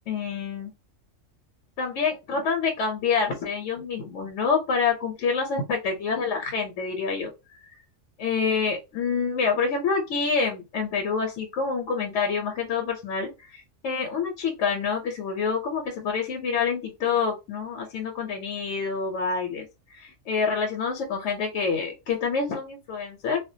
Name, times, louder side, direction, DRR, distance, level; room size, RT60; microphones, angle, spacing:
voice 1, 0.1-0.7 1.8-7.3 8.2-19.7 19.9-23.4, left 5 dB, 70° left, 2 dB, 0.9 m, -27 dB
2.3 x 2.1 x 2.6 m, 0.26 s
omnidirectional pair, 1.4 m